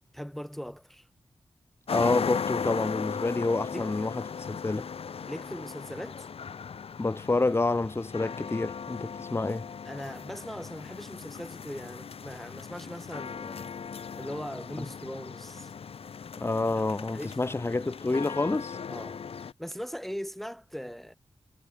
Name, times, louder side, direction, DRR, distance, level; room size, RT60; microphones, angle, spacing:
voice 1, 0.1-1.1 3.7-3.9 5.3-6.3 9.8-13.7 14.1-15.7 17.1-17.7 18.9-21.1, equal, ahead, 1.4 m, -40 dB
sound 1, 1.9-19.5, left 6 dB, 85° left, 3.1 m, -38 dB
voice 2, 1.9-4.9 7.0-9.6 16.4-18.8, left 2 dB, 25° left, 1.5 m, -28 dB
wide cardioid pair, 105°, 10 cm